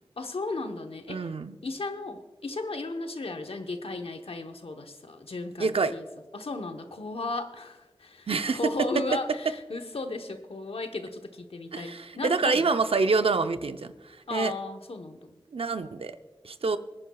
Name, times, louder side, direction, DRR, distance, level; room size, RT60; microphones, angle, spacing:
voice 1, 0.2-1.3 1.6-6.1 6.3-12.7 14.3-15.4, left 2 dB, 90° left, 6 dB, 1.0 m, -35 dB
voice 2, 1.1-1.6 5.6-5.9 8.3-8.6 11.7-14.5 15.5-16.2 16.4-16.8, right 4 dB, 90° right, 9 dB, 0.6 m, -27 dB
24.0 x 9.8 x 2.3 m, 1.2 s
wide cardioid pair, 55°, 9 cm